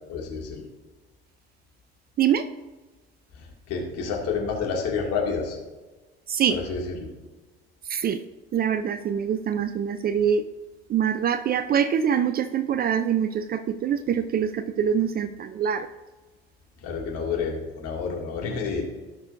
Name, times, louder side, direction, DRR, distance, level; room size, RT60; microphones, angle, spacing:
voice 1, 0.1-0.6 3.4-5.6 6.5-7.1 16.8-18.8, left 5 dB, 50° left, 0 dB, 2.3 m, -29 dB
voice 2, 6.3-6.6 7.9-8.2 8.5-10.4 10.9-15.9, right 8 dB, 30° right, 12 dB, 0.5 m, -24 dB
17.0 x 6.1 x 2.6 m, 1.2 s
figure-of-eight pair, 65°, 31 cm